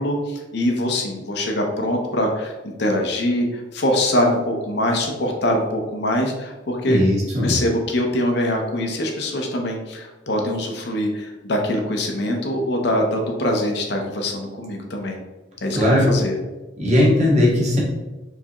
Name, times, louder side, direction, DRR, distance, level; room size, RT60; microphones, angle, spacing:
voice 1, 0.0-7.1 7.4-15.2 15.6-16.4, left 1 dB, 55° left, 2 dB, 0.7 m, -23 dB
voice 2, 6.9-7.5 15.7-16.1 16.8-17.8, left 1 dB, 35° right, -5 dB, 1.4 m, -18 dB
4.6 x 3.4 x 2.9 m, 1.1 s
head